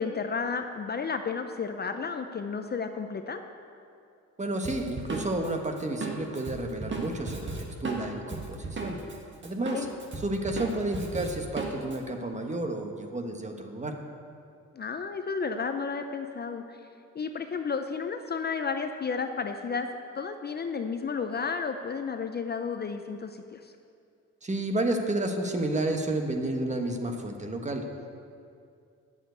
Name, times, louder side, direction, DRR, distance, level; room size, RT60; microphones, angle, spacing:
voice 1, 0.0-3.4 9.7-9.9 14.7-16.8 17.1-19.9 20.1-23.7, left 5 dB, 35° left, 7 dB, 0.6 m, -32 dB
voice 2, 4.4-9.0 9.4-9.9 10.2-14.0 24.4-27.9, right 1 dB, 25° right, 4 dB, 1.2 m, -31 dB
Drum kit, 4.6-9.2 9.4-12.0, right 3 dB, 40° right, 1.7 m, -36 dB
9.2 x 7.3 x 8.0 m, 2.4 s
cardioid pair, 90°, 30 cm